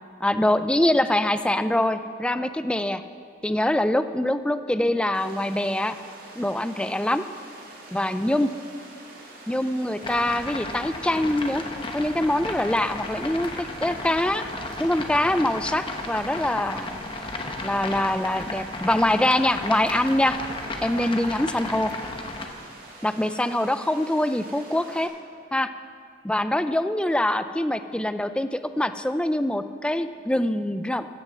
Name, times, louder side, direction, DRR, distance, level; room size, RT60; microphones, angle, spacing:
voice 1, 0.2-3.0 3.4-6.0 6.4-7.3 7.9-8.5 9.5-11.6 11.9-14.4 14.8-17.0 17.6-20.4 20.8-21.9 23.0-25.1 25.5-25.7 26.2-31.1, left 1 dB, 5° left, 11 dB, 0.3 m, -24 dB
Water, 5.1-25.1, right 2 dB, 50° right, 2.2 m, -46 dB
sound 1, 10.0-22.5, left 2 dB, 30° left, 0.9 m, -34 dB
14.5 x 6.5 x 7.4 m, 2.3 s
head